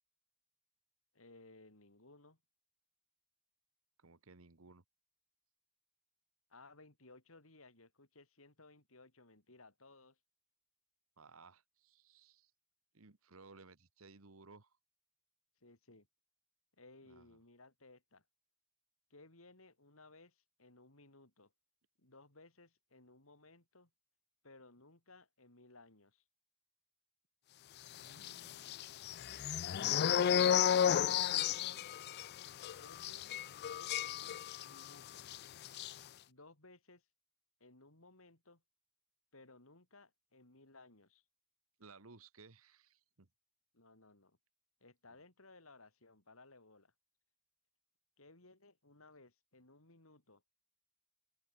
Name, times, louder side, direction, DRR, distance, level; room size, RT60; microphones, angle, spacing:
voice 1, 1.1-2.4 6.5-10.2 15.6-16.1 16.8-18.2 19.1-21.5 22.0-23.9 24.4-26.2 32.8-35.2 36.2-37.0 37.6-38.6 39.3-41.2 43.7-44.4 44.8-46.9 48.2-50.4, left 2 dB, 75° left, 4.9 m, -61 dB
voice 2, 4.0-4.8 11.2-12.5 12.9-14.8 17.0-17.4 28.0-28.7 29.8-30.4 31.0-32.0 41.8-43.3, right 3 dB, 80° right, 1.5 m, -59 dB
sound 1, 28.2-34.9 35.2-35.4 35.6-35.9, left 9 dB, 50° left, 0.4 m, -33 dB
open air
head